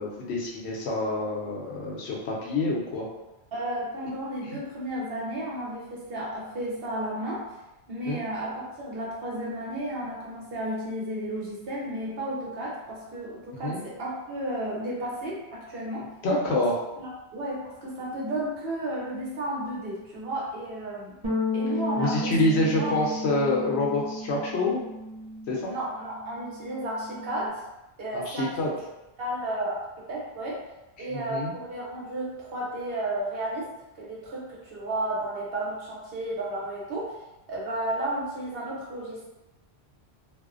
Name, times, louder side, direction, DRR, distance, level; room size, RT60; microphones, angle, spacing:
voice 1, 0.0-3.1 8.1-8.2 13.5-13.8 16.2-16.8 22.0-24.8 25.5-25.7 28.1-28.7 31.0-31.5, left 2 dB, 75° left, -3 dB, 0.9 m, -27 dB
voice 2, 3.5-7.4 7.9-16.1 16.5-16.6 17.0-21.2 21.5-23.0 25.6-27.6 28.0-28.5 29.2-29.8 30.1-30.5 31.0-33.7 34.0-37.1 37.5-39.3, right 1 dB, 65° right, -5 dB, 1.0 m, -33 dB
sound 1, 21.2-25.8 26.1-27.5, left 1 dB, 35° right, 0.5 m, -33 dB
2.5 x 2.1 x 2.4 m, 0.97 s
omnidirectional pair, 1.1 m